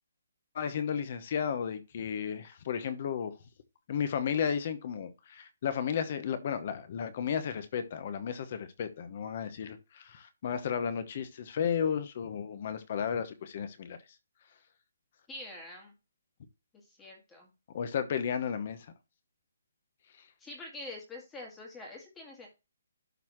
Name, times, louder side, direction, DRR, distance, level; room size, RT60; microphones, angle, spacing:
voice 1, 0.5-3.3 3.9-14.0 17.7-18.8, left 7 dB, 35° left, 1.0 m, -33 dB
voice 2, 15.3-15.9 16.7-17.5 20.4-22.5, left 2 dB, 10° left, 2.1 m, -45 dB
12.0 x 4.0 x 3.1 m
hypercardioid pair, 170°, 0 cm